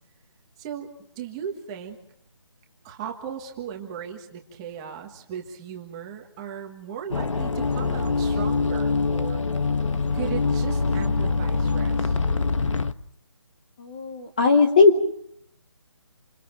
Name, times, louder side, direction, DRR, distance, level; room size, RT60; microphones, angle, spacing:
voice 1, 0.6-0.9 1.1-2.0 2.8-9.5 10.1-12.2, right 8 dB, 10° right, 2 dB, 1.5 m, -37 dB
sound 1, 7.1-12.9, left 4 dB, 90° left, 1.3 m, -24 dB
voice 2, 13.8-15.0, left 4 dB, 15° left, 4 dB, 1.0 m, -18 dB
28.5 x 27.5 x 4.5 m, 0.69 s
hypercardioid pair, 180°, 16 cm